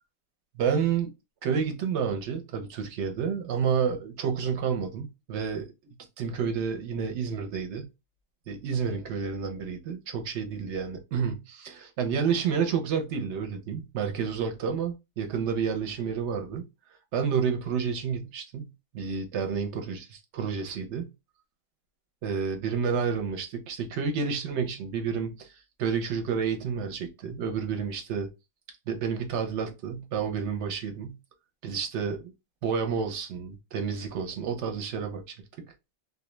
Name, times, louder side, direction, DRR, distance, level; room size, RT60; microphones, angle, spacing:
voice 1, 0.6-1.1 1.4-5.7 6.2-7.9 8.5-16.7 17.1-21.1 22.2-25.5 25.8-28.3 28.9-31.2 31.6-32.2 32.6-35.3, right 6 dB, 70° right, 0.8 m, -30 dB
2.2 x 2.1 x 2.9 m
omnidirectional pair, 1.3 m